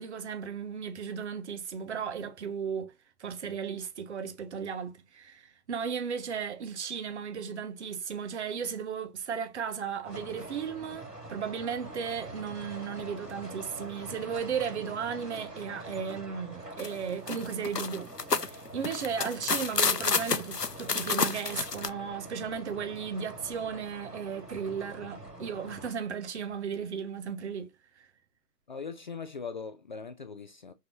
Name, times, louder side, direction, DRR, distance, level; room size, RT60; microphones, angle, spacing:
voice 1, 0.0-2.9 3.2-27.7 28.0-28.1, right 7 dB, 45° right, 1.6 m, -35 dB
sound 1, 10.0-25.9, right 1 dB, 85° right, 4.6 m, -45 dB
sound 2, 16.8-16.9 17.3-21.9, left 4 dB, 90° left, 0.9 m, -29 dB
voice 2, 28.7-30.7, left 5 dB, 30° left, 0.5 m, -40 dB
6.3 x 5.3 x 2.8 m
figure-of-eight pair, 125°, 47 cm